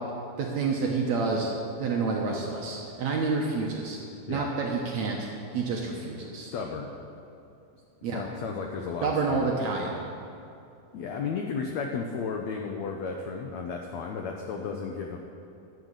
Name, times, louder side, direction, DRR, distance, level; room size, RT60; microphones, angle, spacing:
voice 1, 0.4-1.5 1.8-4.0 4.3-5.2 5.5-6.5 8.0-8.2 9.0-10.0, right 4 dB, 65° right, -1 dB, 1.9 m, -28 dB
voice 2, 6.4-6.9 8.0-9.6 10.9-15.2, left 5 dB, 80° left, 2 dB, 1.6 m, -34 dB
12.5 x 7.9 x 8.2 m, 2.6 s
omnidirectional pair, 4.3 m